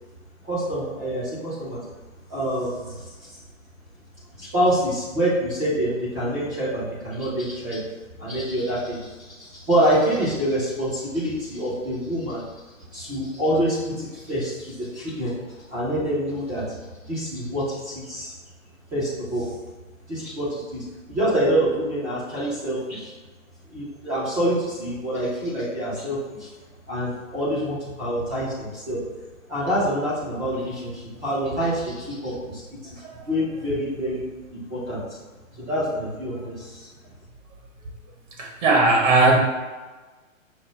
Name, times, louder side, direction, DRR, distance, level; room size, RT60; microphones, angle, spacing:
voice 1, 0.4-1.8 2.3-3.0 4.4-7.8 8.2-9.0 9.4-12.4 12.9-15.4 15.7-16.6 17.1-18.3 18.9-19.5 20.1-23.1 23.7-26.5 26.9-29.0 29.5-32.6 32.9-33.0 33.3-34.2 34.7-35.0 35.6-36.9, right 1 dB, 10° right, -9 dB, 0.4 m, -26 dB
voice 2, 38.4-39.4, right 2 dB, 65° right, 0 dB, 1.2 m, -18 dB
5.4 x 2.1 x 4.3 m, 1.3 s
hypercardioid pair, 130°, 40 cm